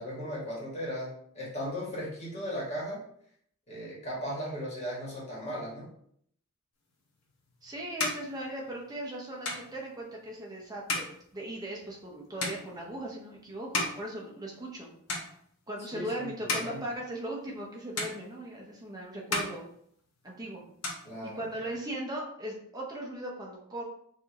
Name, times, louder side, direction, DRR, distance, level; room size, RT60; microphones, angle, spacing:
voice 1, 0.0-3.0 3.7-5.9 15.9-16.8 21.0-21.4, equal, 30° left, -5 dB, 1.5 m, -37 dB
sound 1, 7.1-14.8 15.1-15.8 16.2-17.7 18.0-18.8 19.1-20.4 20.6-21.7, left 2 dB, 90° left, 1.1 m, -37 dB
voice 2, 7.6-14.9 15.7-19.6 20.2-20.6 21.2-23.8, right 1 dB, 15° right, -2 dB, 0.7 m, -38 dB
4.9 x 2.7 x 2.9 m, 0.66 s
head